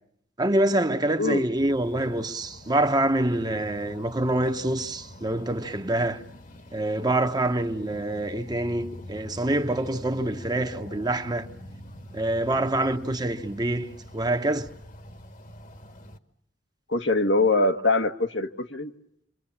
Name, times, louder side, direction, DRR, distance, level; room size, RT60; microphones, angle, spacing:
voice 1, 0.4-6.2 6.7-11.5 12.1-14.7, right 1 dB, 20° right, 1.1 m, -26 dB
sound 1, 1.6-16.2, left 1 dB, 45° left, 1.5 m, -45 dB
voice 2, 16.9-18.9, left 2 dB, 80° left, 1.6 m, -23 dB
28.5 x 24.0 x 7.3 m
head